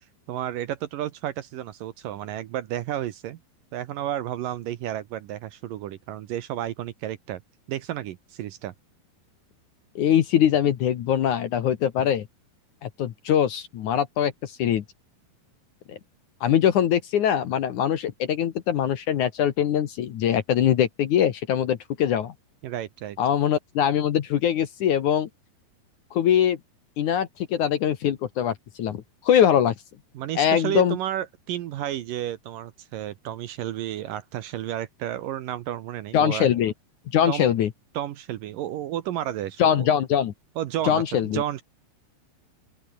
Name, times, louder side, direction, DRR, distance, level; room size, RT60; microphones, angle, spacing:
voice 1, 0.3-3.4 3.7-7.4 7.7-8.7 22.6-23.2 30.2-36.5 37.3-37.5 37.9-39.9 40.6-41.6, right 12 dB, 70° right, 2.4 m, -32 dB
voice 2, 10.0-12.3 12.8-14.8 15.9-16.0 16.4-22.3 23.2-25.3 26.1-26.6 27.0-29.7 30.4-31.0 36.1-36.7 37.1-37.7 39.6-40.3 40.8-41.4, left 9 dB, 60° left, 2.3 m, -22 dB
open air
omnidirectional pair, 4.6 m